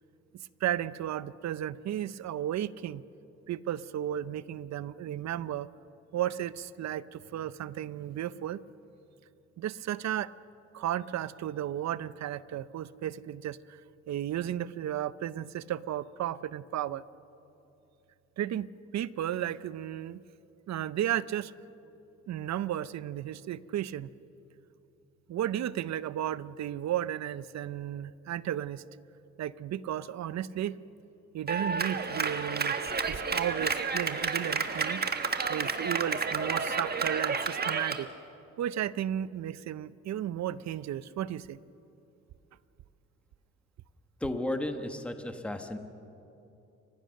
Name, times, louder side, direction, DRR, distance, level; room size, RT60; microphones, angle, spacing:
voice 1, 0.3-3.0 3.5-5.7 6.1-8.6 9.6-10.3 10.7-13.8 14.1-17.0 18.4-18.7 18.9-20.2 20.7-21.5 22.3-24.1 25.3-28.8 29.4-30.8 31.3-32.8 33.1-35.0 35.5-38.1 38.6-41.6, right 11 dB, 65° right, 17 dB, 0.7 m, -34 dB
Clapping, 31.5-38.0, right 5 dB, 30° right, 1.5 m, -31 dB
voice 2, 44.2-45.8, left 1 dB, 5° left, 6 dB, 1.4 m, -33 dB
30.0 x 16.0 x 6.5 m, 2.8 s
cardioid pair, 90°, 30 cm